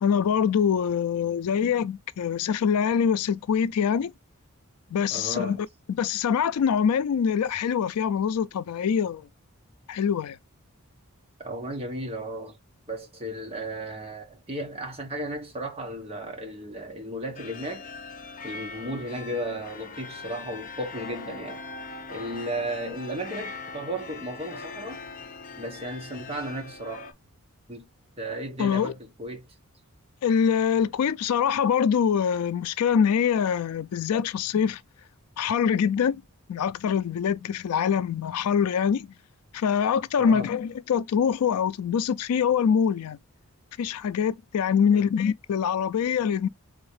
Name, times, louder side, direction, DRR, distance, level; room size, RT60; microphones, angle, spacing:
voice 1, 0.0-4.1 4.9-5.6 5.9-9.3 9.9-10.4 28.6-28.9 30.2-34.8 35.4-36.2 36.5-39.1 39.5-43.2 43.8-46.5, left 7 dB, 85° left, 0.4 m, -24 dB
voice 2, 5.1-5.6 11.4-12.6 12.9-17.9 18.4-21.6 22.1-25.0 25.6-27.1 27.7-27.9 28.2-29.5 40.2-40.5 44.9-45.0, right 1 dB, 25° right, 1.3 m, -34 dB
sound 1, 17.4-27.1, left 4 dB, 35° left, 0.6 m, -41 dB
3.9 x 3.5 x 3.2 m
head